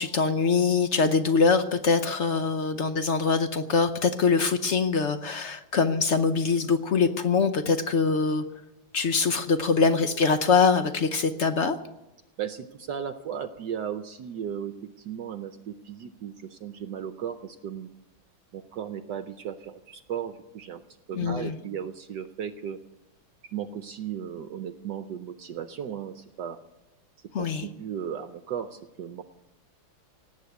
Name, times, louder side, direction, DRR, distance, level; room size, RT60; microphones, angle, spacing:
voice 1, 0.0-8.4 8.9-11.8 21.1-21.6 27.3-27.7, left 5 dB, 65° left, 9 dB, 0.7 m, -23 dB
voice 2, 12.4-17.9 18.5-20.8 21.1-22.8 23.5-26.6 27.4-29.2, right 8 dB, 70° right, 10 dB, 1.2 m, -36 dB
18.0 x 8.4 x 9.3 m, 1.0 s
omnidirectional pair, 2.1 m